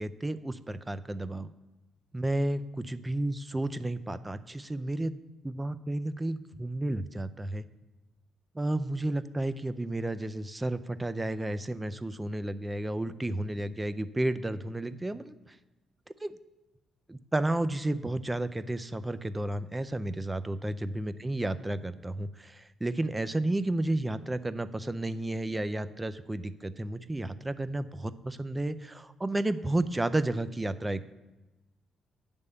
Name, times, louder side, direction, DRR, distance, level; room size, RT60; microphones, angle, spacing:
voice 1, 0.0-1.5 2.1-5.1 5.4-7.7 8.6-15.5 16.2-16.4 17.1-31.0, right 1 dB, 15° right, 13 dB, 0.4 m, -32 dB
9.6 x 3.5 x 6.7 m, 1.1 s
cardioid pair, 90°, 0 cm